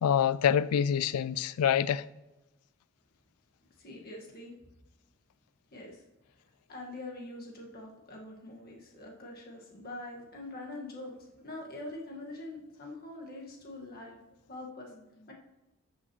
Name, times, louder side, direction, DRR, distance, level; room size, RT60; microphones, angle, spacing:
voice 1, 0.0-2.0, left 8 dB, 90° left, 0.3 m, -26 dB
voice 2, 3.8-4.6 5.7-6.0 6.7-15.3, left 2 dB, 45° left, 1.6 m, -44 dB
14.0 x 6.1 x 3.0 m
head